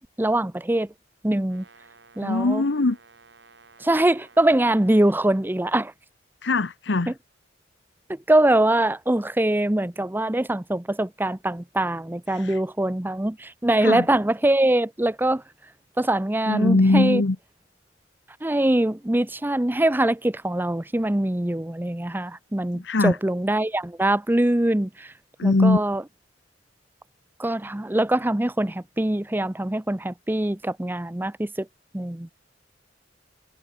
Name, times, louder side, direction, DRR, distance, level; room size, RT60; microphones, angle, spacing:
voice 1, 0.2-0.9 1.2-1.6 2.2-2.6 3.8-5.9 7.1-7.2 8.1-15.4 16.0-17.2 18.4-25.1 25.4-26.0 27.4-31.7 31.9-32.3, right 1 dB, 10° right, 0.7 m, -23 dB
Brass instrument, 1.4-5.5, right 4 dB, 70° right, 4.4 m, -54 dB
voice 2, 2.2-3.0 6.4-7.1 12.3-12.6 13.8-14.0 16.5-17.4 22.7-23.2 25.4-25.8, left 2 dB, 70° left, 1.0 m, -21 dB
head